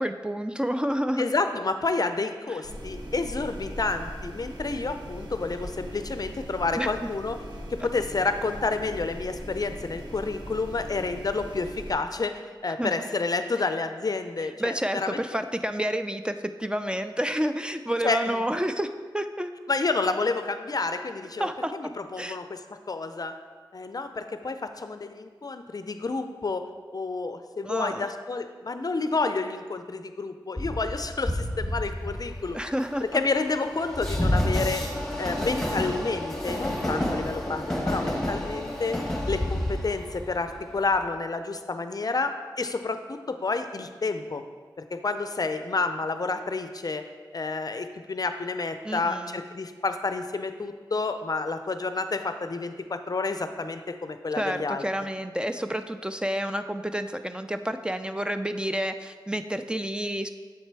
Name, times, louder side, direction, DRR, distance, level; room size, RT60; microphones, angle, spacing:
voice 1, 0.0-1.3 2.5-2.6 6.8-6.9 12.8-12.9 14.6-16.3 16.6-18.9 19.1-19.5 21.4-21.7 22.2-22.4 27.6-28.1 32.5-33.2 48.8-49.4 54.3-60.3, equal, 10° right, 8 dB, 0.3 m, -29 dB
voice 2, 1.2-7.4 7.7-15.2 18.0-18.4 19.7-23.3 23.7-32.6 33.0-34.9 35.2-39.0 39.3-44.4 44.9-47.0 47.3-54.8, left 3 dB, 50° left, 8 dB, 0.4 m, -29 dB
sound 1, 2.6-11.9, equal, 65° right, 1.3 m, -40 dB
Train, 30.6-41.0, left 1 dB, 5° left, 1.4 m, -30 dB
7.4 x 4.1 x 4.6 m, 1.5 s
cardioid pair, 50°, 8 cm